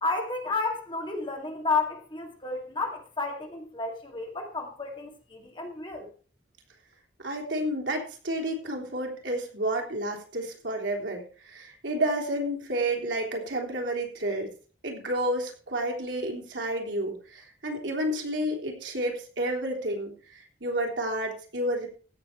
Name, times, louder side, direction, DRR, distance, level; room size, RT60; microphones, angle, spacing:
voice 1, 0.0-6.1, left 3 dB, 25° left, 2 dB, 2.4 m, -31 dB
voice 2, 7.2-14.5 14.8-21.9, right 1 dB, 80° right, 1 dB, 3.5 m, -30 dB
16.0 x 6.8 x 4.5 m, 0.39 s
head